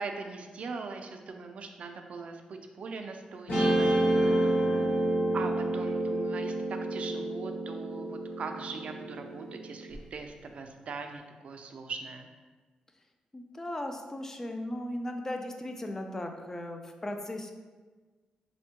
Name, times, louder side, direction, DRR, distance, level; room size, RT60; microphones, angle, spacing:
voice 1, 0.0-4.9 5.3-12.3, right 4 dB, 55° right, 5 dB, 0.3 m, -41 dB
Guitar, 3.5-9.9, right 1 dB, 75° left, 1.1 m, -29 dB
voice 2, 13.3-17.5, left 1 dB, 20° left, 4 dB, 0.3 m, -37 dB
4.3 x 2.1 x 2.8 m, 1.3 s
cardioid pair, 100°, 2 cm